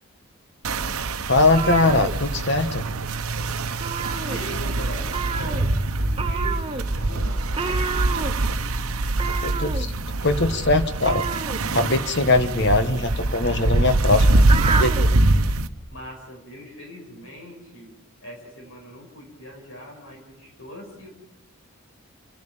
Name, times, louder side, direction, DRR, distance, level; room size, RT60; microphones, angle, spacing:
sound 1, 0.6-15.7, right 2 dB, 85° right, 1.0 m, -24 dB
voice 1, 1.3-2.8 9.4-9.9 10.2-11.2 11.7-14.4 14.8-15.2, left 2 dB, 50° left, 9 dB, 1.3 m, -21 dB
sound 2, 1.3-2.9 3.1-3.4 3.6-4.7 5.1-15.2, right 5 dB, 25° right, 0.7 m, -30 dB
voice 2, 4.2-8.3 13.9-14.3 15.9-17.9 18.2-21.1, left 1 dB, 70° left, 1 dB, 5.3 m, -41 dB
27.5 x 10.5 x 8.8 m, 0.91 s
head